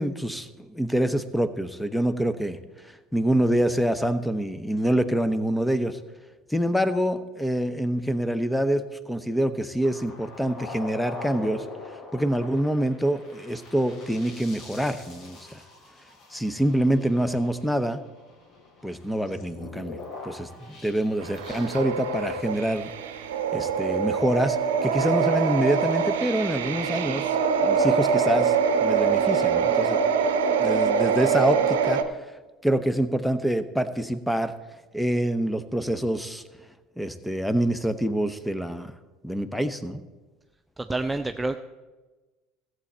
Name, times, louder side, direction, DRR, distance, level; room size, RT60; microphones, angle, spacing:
voice 1, 0.0-2.6 3.1-6.0 6.5-11.6 12.1-15.6 16.3-18.0 18.8-20.0 20.2-22.9 23.5-27.3 27.6-28.5 28.8-30.0 30.6-32.0 32.6-34.5 34.9-36.4 37.0-38.9 39.2-40.0, right 1 dB, 5° left, 12 dB, 0.8 m, -26 dB
sound 1, 9.8-21.8, left 3 dB, 55° left, 2.6 m, -43 dB
sound 2, 21.2-32.0, right 6 dB, 80° right, 0.7 m, -24 dB
voice 2, 40.8-41.6, right 2 dB, 15° right, 8 dB, 0.4 m, -28 dB
14.5 x 7.9 x 4.3 m, 1.2 s
hypercardioid pair, 70°, 0 cm